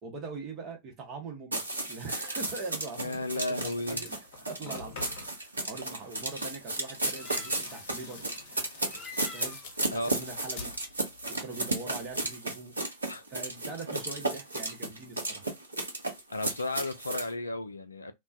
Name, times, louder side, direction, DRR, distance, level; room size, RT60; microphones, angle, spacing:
voice 1, 0.0-3.2 3.6-8.2 9.3-9.6 9.9-10.7 11.3-12.8 13.3-15.5, right 4 dB, 35° right, 1.0 m, -42 dB
sound 1, 1.5-17.3, right 2 dB, 80° right, 0.6 m, -34 dB
voice 2, 3.0-4.0 9.9-10.1 13.1-13.2 13.9-14.0 16.3-18.1, left 2 dB, 80° left, 0.3 m, -34 dB
sound 2, 4.0-5.5 6.8-11.4 11.7-12.3, left 4 dB, 55° left, 0.8 m, -47 dB
sound 3, 5.7-5.8 7.1-7.8 8.9-9.7, left 2 dB, 5° left, 0.6 m, -46 dB
2.2 x 2.2 x 2.6 m
figure-of-eight pair, 90°, 0 cm